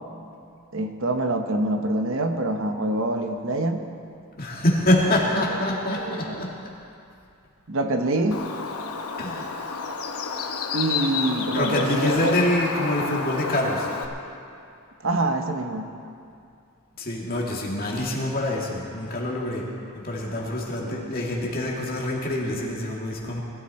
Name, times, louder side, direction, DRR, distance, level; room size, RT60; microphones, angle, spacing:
voice 1, 0.7-3.9 5.5-5.6 6.0-6.5 7.7-8.4 10.7-12.3 15.0-15.9 20.8-21.1, right 2 dB, 60° right, 5 dB, 1.0 m, -26 dB
voice 2, 4.4-6.5 9.2-9.5 11.5-13.9 17.0-19.6 19.9-23.4, left 1 dB, 40° left, -2 dB, 2.3 m, -25 dB
Bird, 8.3-14.1, left 5 dB, 80° left, 1.1 m, -31 dB
20.0 x 13.0 x 4.3 m, 2.5 s
head